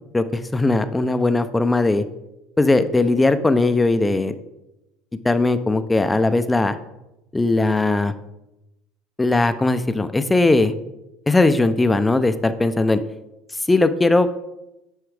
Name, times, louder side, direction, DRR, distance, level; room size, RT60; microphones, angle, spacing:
voice 1, 0.1-2.0 2.6-4.3 5.2-6.8 7.3-8.1 9.2-10.7 11.3-13.0 13.5-14.3, left 2 dB, 15° left, 11 dB, 0.5 m, -19 dB
9.5 x 4.6 x 3.4 m, 0.92 s
supercardioid pair, 90°, 0 cm